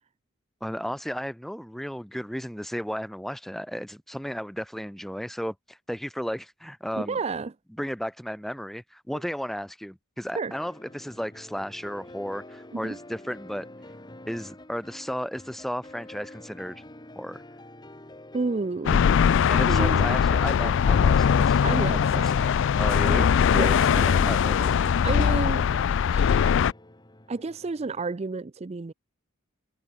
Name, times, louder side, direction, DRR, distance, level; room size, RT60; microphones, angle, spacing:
voice 1, 0.6-7.2 7.8-13.7 14.3-16.8 17.2-17.4 19.5-24.7 25.6-25.9, equal, ahead, 0.8 m, -34 dB
voice 2, 6.9-7.5 10.3-10.5 12.7-13.0 18.3-19.1 19.5-20.1 21.6-22.5 23.0-23.2 23.5-24.3 25.0-25.7 26.1-26.6 27.3-28.9, right 3 dB, 30° right, 0.4 m, -31 dB
sound 1, 10.5-28.1, left 1 dB, 20° left, 2.5 m, -48 dB
sound 2, 18.9-26.7, left 7 dB, 60° left, 0.3 m, -21 dB
head